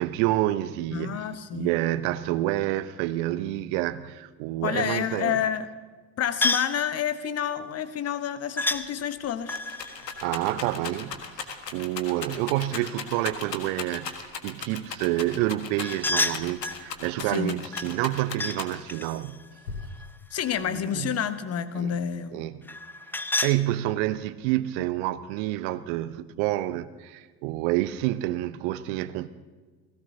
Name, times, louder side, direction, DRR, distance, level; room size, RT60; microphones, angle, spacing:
voice 1, 0.0-1.2 1.5-5.4 10.0-11.2 11.7-19.4 20.6-21.2 21.8-21.9 22.3-22.6 23.4-29.3, right 15 dB, 45° right, 0.8 m, -28 dB
voice 2, 0.9-1.7 4.6-5.7 6.2-9.6 17.3-17.5 20.3-22.4, left 9 dB, 30° left, 1.0 m, -29 dB
sound 1, 6.4-6.8 8.6-8.8 9.4-11.3 15.8-16.8 17.7-18.6 18.9-20.8 22.6-23.6, left 2 dB, 5° left, 0.5 m, -30 dB
Rattle, 8.7-8.8 9.1-19.0 19.7-20.3, left 6 dB, 75° left, 1.6 m, -37 dB
30.0 x 16.5 x 2.8 m
figure-of-eight pair, 70°, 50 cm